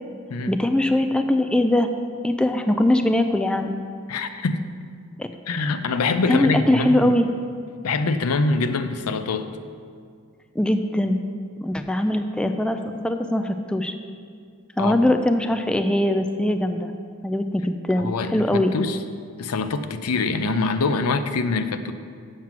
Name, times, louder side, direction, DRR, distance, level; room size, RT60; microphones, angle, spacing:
voice 1, 0.5-1.9 2.2-3.7 5.2-5.3 6.3-7.3 10.6-11.2 11.6-12.8 13.0-13.9 14.8-16.9 17.2-18.1 18.3-18.7, left 1 dB, 5° left, 6 dB, 0.3 m, -21 dB
voice 2, 4.1-4.6 5.5-7.1 7.8-9.5 14.8-15.0 18.0-19.0 19.4-21.9, left 3 dB, 85° left, 9 dB, 0.6 m, -24 dB
7.4 x 7.4 x 6.0 m, 2.2 s
head